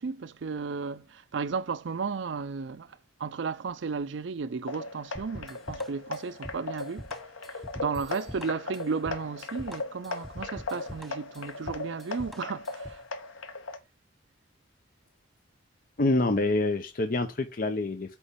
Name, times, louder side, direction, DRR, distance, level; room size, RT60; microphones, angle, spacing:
voice 1, 0.0-7.1 7.4-13.0, right 5 dB, 70° right, 0.5 m, -34 dB
sound 1, 4.7-13.8, left 3 dB, 85° left, 0.9 m, -38 dB
sound 2, 5.2-13.1, equal, ahead, 0.3 m, -45 dB
Bicycle bell, 7.9-8.9, right 6 dB, 45° right, 2.7 m, -57 dB
voice 2, 16.0-18.2, left 2 dB, 45° left, 0.6 m, -26 dB
8.3 x 3.1 x 5.2 m
head